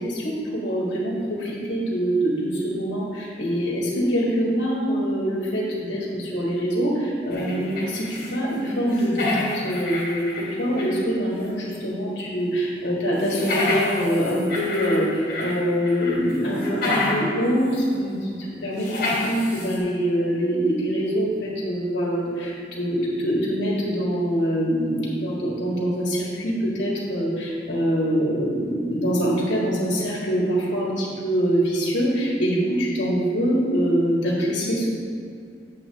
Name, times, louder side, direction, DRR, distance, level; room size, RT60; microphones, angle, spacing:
voice 1, 0.0-34.9, equal, 85° left, -4 dB, 1.8 m, -24 dB
sound 1, 7.3-8.4 8.6-11.1 11.4-11.5 13.2-15.6 15.8-17.3 17.7-17.8 18.8-19.8, left 2 dB, 50° left, 2.3 m, -28 dB
8.6 x 7.9 x 3.6 m, 2.3 s
head